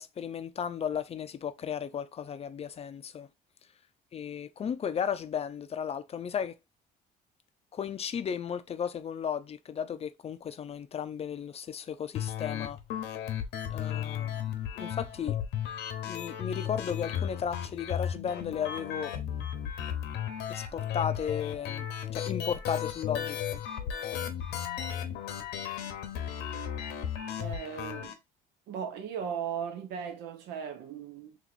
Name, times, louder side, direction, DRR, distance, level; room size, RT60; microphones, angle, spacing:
voice 1, 0.0-3.3 4.1-6.6 7.7-12.8 13.7-14.3 14.8-15.4 16.1-19.2 20.5-21.9 22.1-23.6, left 8 dB, 35° left, 0.5 m, -35 dB
sound 1, 12.1-28.1, left 9 dB, 85° left, 1.0 m, -35 dB
voice 2, 24.8-25.1 27.4-28.1 28.7-31.4, right 7 dB, 85° right, 1.0 m, -37 dB
3.0 x 3.0 x 4.1 m
cardioid pair, 110°, 17 cm